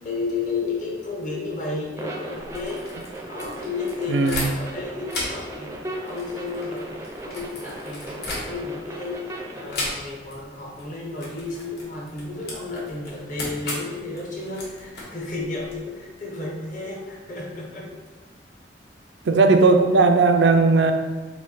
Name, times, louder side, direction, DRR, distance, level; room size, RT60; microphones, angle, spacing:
voice 1, 0.0-2.9 3.3-5.8 6.0-6.9 7.2-17.9, left 3 dB, 45° left, -3 dB, 1.0 m, -32 dB
sound 1, 2.0-9.8, right 1 dB, 15° right, 0.4 m, -37 dB
sound 2, 2.3-4.8 5.1-8.9 9.7-10.4 10.6-10.9 11.2-15.8, left 2 dB, 65° left, 1.1 m, -35 dB
voice 2, 4.1-4.5 19.3-20.9, right 3 dB, 85° right, 7 dB, 0.4 m, -17 dB
4.3 x 2.7 x 4.0 m, 1.3 s
head